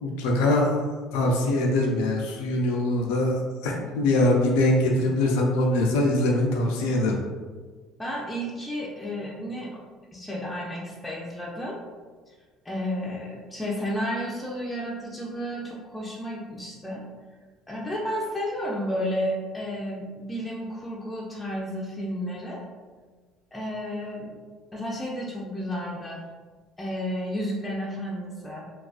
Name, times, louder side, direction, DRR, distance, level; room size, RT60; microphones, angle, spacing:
voice 1, 0.0-0.8 1.1-7.2, left 1 dB, 85° left, -1 dB, 0.3 m, -23 dB
voice 2, 8.0-9.7 10.1-11.8 12.6-17.0 17.7-22.6 23.5-24.4 24.7-26.2 26.8-28.7, equal, 10° left, -5 dB, 0.4 m, -32 dB
2.3 x 2.3 x 2.4 m, 1.4 s
supercardioid pair, 95°, 0 cm